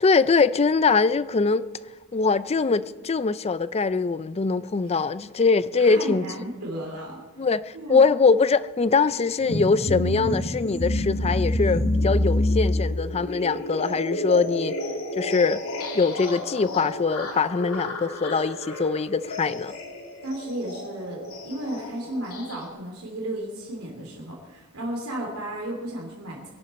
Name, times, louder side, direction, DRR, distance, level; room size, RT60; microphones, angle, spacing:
voice 1, 0.0-1.6 2.1-6.3 7.4-14.8 15.2-15.6 15.9-19.7, left 4 dB, 30° left, 0.5 m, -22 dB
voice 2, 5.8-7.2 7.7-8.1 20.2-26.5, right 1 dB, 85° right, 3.1 m, -33 dB
sound 1, 9.4-22.7, left 1 dB, 75° left, 2.6 m, -29 dB
23.5 x 11.0 x 4.3 m
head